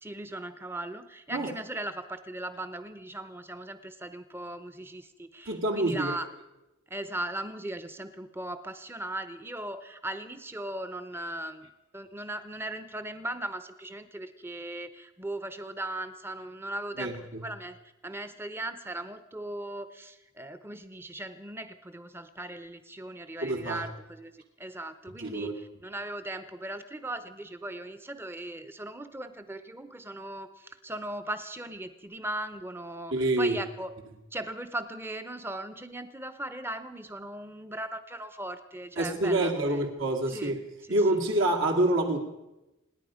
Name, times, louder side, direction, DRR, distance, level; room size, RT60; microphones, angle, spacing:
voice 1, 0.0-6.3 6.9-11.7 11.9-33.9 34.3-39.8 40.3-40.5 40.8-41.2, right 1 dB, 10° right, 11 dB, 0.7 m, -38 dB
voice 2, 5.5-6.1 17.0-17.4 23.4-23.8 25.2-25.6 33.1-33.6 39.0-40.5 40.9-42.2, right 1 dB, 75° right, 1 dB, 2.3 m, -27 dB
26.5 x 10.0 x 5.0 m, 0.97 s
head